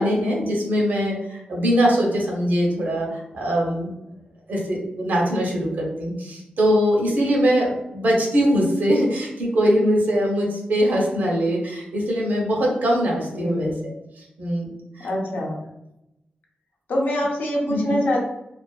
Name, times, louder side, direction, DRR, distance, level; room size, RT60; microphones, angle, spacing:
voice 1, 0.0-3.9 4.5-14.7 15.0-15.1 17.7-18.0, equal, 65° right, -2 dB, 0.8 m, -22 dB
voice 2, 13.3-13.8 15.0-15.6 16.9-18.2, equal, 75° left, -2 dB, 0.7 m, -24 dB
2.4 x 2.4 x 2.3 m, 0.88 s
wide cardioid pair, 120°, 3 cm